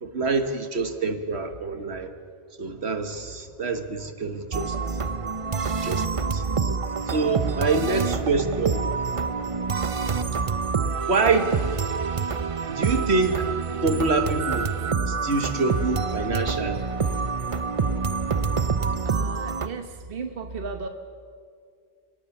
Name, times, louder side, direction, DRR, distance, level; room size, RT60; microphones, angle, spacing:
voice 1, 0.0-2.1 2.6-4.8 5.8-6.1 6.3-6.4 7.1-8.9 10.3-10.4 11.1-11.5 12.7-13.5 13.8-14.7 15.1-16.8, right 3 dB, 75° right, 8 dB, 1.7 m, -26 dB
sound 1, 4.5-19.7, right 5 dB, 35° right, 0.6 m, -27 dB
voice 2, 7.8-8.2 19.0-20.9, right 4 dB, 55° right, 6 dB, 1.3 m, -35 dB
29.5 x 17.5 x 7.1 m, 2.2 s
omnidirectional pair, 1.1 m